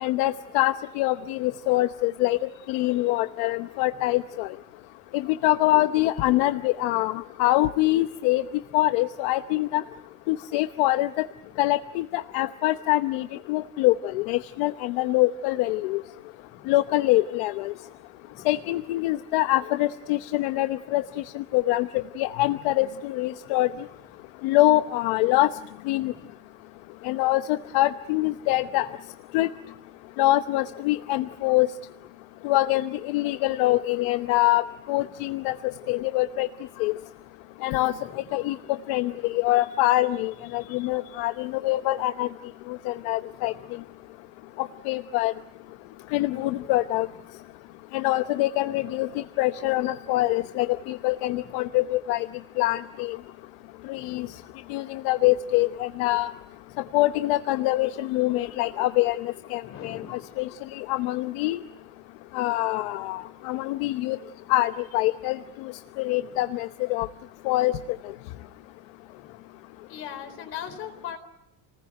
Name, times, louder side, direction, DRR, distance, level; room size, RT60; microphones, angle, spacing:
voice 1, 0.0-4.5 5.1-8.4 8.7-9.8 10.3-11.3 11.6-16.0 16.7-17.7 18.5-21.0 21.3-23.7 24.4-25.5 25.9-26.1 27.0-28.9 29.3-29.5 30.2-31.7 32.4-35.6 35.9-36.5 36.8-36.9 37.6-37.9 38.3-42.3 42.7-43.5 44.6-45.3 46.1-47.1 47.9-49.1 49.4-52.3 52.6-53.2 53.9-54.3 54.7-56.3 56.9-61.6 62.3-64.2 64.5-65.4 66.0-67.1 67.4-67.8, left 17 dB, 70° left, 10 dB, 1.0 m, -24 dB
voice 2, 3.8-4.2 8.7-8.8 11.4-11.7 16.5-16.8 18.3-18.7 20.9-21.3 23.7-24.0 26.0-26.3 28.4-28.9 35.2-35.4 38.0-38.5 40.5-41.0 43.3-43.8 46.1-46.7 48.7-49.1 51.2-51.7 53.9-54.4 56.7-57.0 59.6-60.2 62.8-63.2 63.8-63.9 66.2-66.4 69.2-69.3 69.9-71.2, left 8 dB, 45° left, 9 dB, 4.3 m, -45 dB
29.0 x 20.0 x 9.2 m, 0.84 s
cardioid pair, 170°, 31 cm